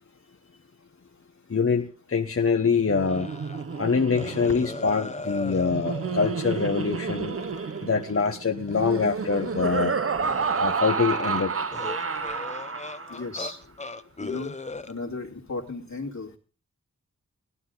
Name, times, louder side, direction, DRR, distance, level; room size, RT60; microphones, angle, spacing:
voice 1, 1.5-3.3 3.8-7.4 7.8-9.9 10.6-11.5, left 5 dB, 50° left, 4 dB, 1.0 m, -24 dB
Laughter, 2.8-13.3, right 5 dB, 50° right, 0.9 m, -30 dB
sound 1, 3.1-3.8 4.1-8.4 8.7-9.9 10.2-13.5 13.8-14.9, left 2 dB, 25° left, 0.8 m, -39 dB
voice 2, 13.1-13.6 14.2-14.6 14.8-16.4, left 3 dB, 70° left, 0 dB, 2.5 m, -35 dB
17.0 x 12.0 x 3.8 m, 0.36 s
wide cardioid pair, 65°, 30 cm